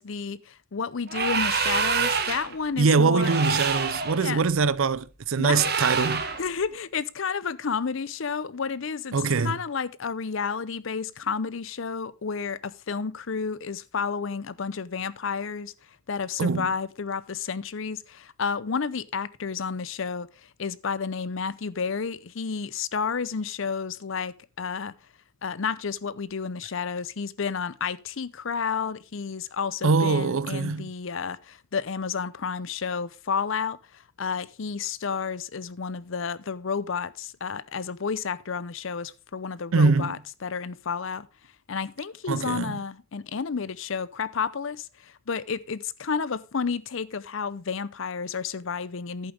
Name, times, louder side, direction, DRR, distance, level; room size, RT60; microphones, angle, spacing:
voice 1, 0.0-3.3 4.2-4.4 5.4-5.7 6.4-9.1 9.4-15.7 16.1-20.3 20.6-24.9 25.4-41.3 41.7-49.3, left 5 dB, 65° left, 0.6 m, -31 dB
sound 1, 1.1-2.5 3.2-4.2 5.5-6.4, right 5 dB, 45° right, 1.4 m, -26 dB
voice 2, 2.8-6.2 9.1-9.6 16.4-16.7 29.8-30.9 39.7-40.2 42.3-42.8, right 4 dB, 70° right, 0.5 m, -23 dB
11.0 x 8.8 x 3.4 m
head